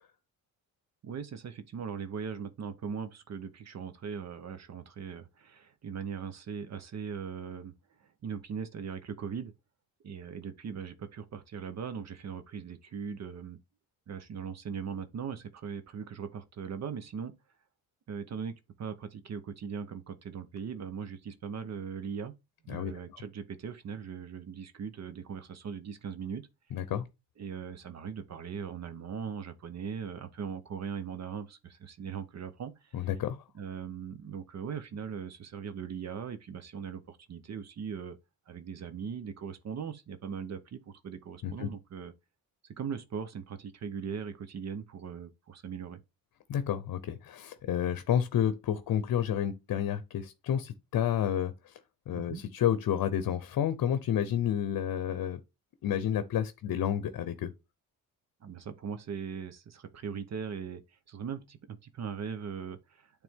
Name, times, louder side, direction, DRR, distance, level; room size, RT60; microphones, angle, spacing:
voice 1, 1.0-7.7 8.0-9.5 10.0-13.6 14.1-17.3 18.1-22.3 22.6-26.5 27.4-33.1 33.5-38.2 38.5-42.1 42.6-46.0 52.1-52.4 58.4-63.2, right 6 dB, 50° right, 0.8 m, -39 dB
voice 2, 26.7-27.1 32.9-33.4 41.4-41.7 46.5-51.8 52.1-55.4 55.8-57.5, left 10 dB, 65° left, 0.7 m, -30 dB
9.1 x 3.4 x 3.5 m
cardioid pair, 115°, 35 cm